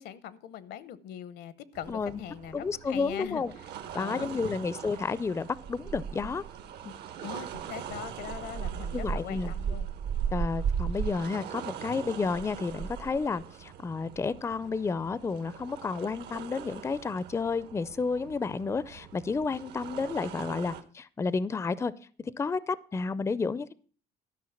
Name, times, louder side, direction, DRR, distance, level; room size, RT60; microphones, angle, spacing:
voice 1, 0.0-3.4 3.9-4.6 7.2-9.9, left 10 dB, 75° left, 16 dB, 0.9 m, -41 dB
sound 1, 1.7-20.8, right 7 dB, 75° right, 1.2 m, -38 dB
voice 2, 1.9-2.2 2.5-3.5 3.9-6.4 6.8-7.0 8.9-9.5 10.3-21.9 22.2-23.7, left 4 dB, 15° left, 18 dB, 0.4 m, -31 dB
12.5 x 5.5 x 7.1 m, 0.43 s
cardioid pair, 110°, 17 cm